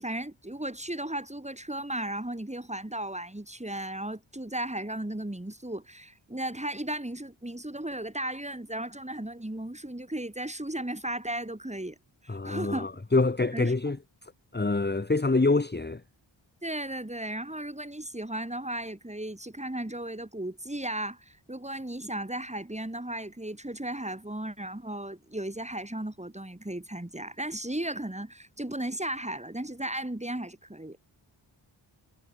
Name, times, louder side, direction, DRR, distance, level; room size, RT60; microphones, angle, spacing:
voice 1, 0.0-12.0 12.2-13.0 13.5-13.7 16.6-31.0, right 1 dB, 15° right, 7.9 m, -35 dB
voice 2, 12.3-14.0 14.5-16.0, left 3 dB, 20° left, 1.4 m, -25 dB
wide cardioid pair, 85°, 48 cm